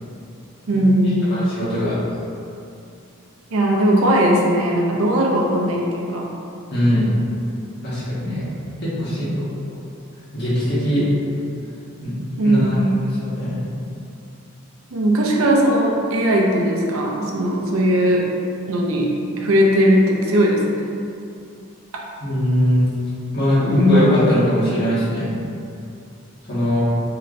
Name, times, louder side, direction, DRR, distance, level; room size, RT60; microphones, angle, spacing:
voice 1, 0.7-1.4 3.5-6.2 12.4-12.9 14.9-18.2 18.7-19.1 19.4-20.9, equal, 75° right, -1 dB, 0.5 m, -18 dB
voice 2, 1.3-1.9 6.7-7.1 7.8-8.4 8.8-9.4 10.3-11.1 12.0-12.1 12.4-12.7 13.2-13.6 22.2-22.9 23.3-25.3 26.5-26.8, left 1 dB, 50° left, -11 dB, 1.1 m, -20 dB
3.1 x 2.8 x 2.5 m, 2.5 s
head